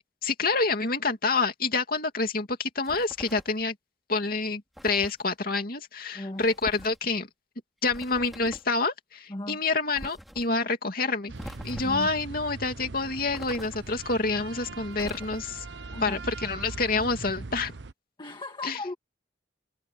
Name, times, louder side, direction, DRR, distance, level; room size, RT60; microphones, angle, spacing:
voice 1, 0.2-3.7 4.1-7.3 7.8-11.3 11.6-15.6 16.0-17.7 18.6-18.8, left 3 dB, 55° left, 2.8 m, -27 dB
sound 1, 2.8-3.6 4.8-5.2 6.4-7.0 7.9-8.7 9.9-10.5 11.4-12.1 13.3-14.0 14.9-15.7, equal, ahead, 5.4 m, -44 dB
voice 2, 6.1-6.5 9.3-9.6 11.8-12.1 15.9-16.2 18.2-18.9, left 2 dB, 25° left, 1.7 m, -36 dB
sound 2, 11.3-17.9, right 3 dB, 85° right, 0.9 m, -41 dB
head